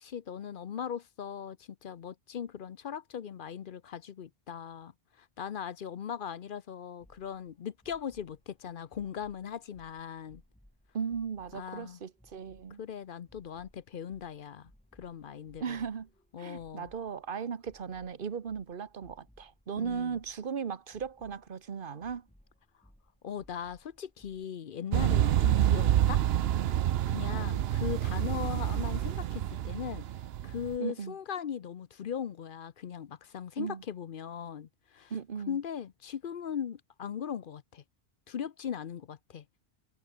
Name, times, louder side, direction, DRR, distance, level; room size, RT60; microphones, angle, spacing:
voice 1, 0.0-4.9 5.2-10.4 11.5-12.0 12.8-15.8 16.3-16.9 19.8-20.2 23.2-26.2 27.1-30.0 30.4-35.1 35.5-37.8 38.3-39.4, left 8 dB, 60° left, 0.8 m, -39 dB
sound 1, 7.0-24.4, equal, 5° left, 3.1 m, -63 dB
voice 2, 10.9-12.8 15.6-16.1 16.4-22.3 27.1-27.5 30.8-31.1 33.6-33.8 35.1-35.6, right 6 dB, 55° right, 1.2 m, -37 dB
sound 2, 24.9-30.8, right 11 dB, 75° right, 0.8 m, -28 dB
omnidirectional pair, 1.0 m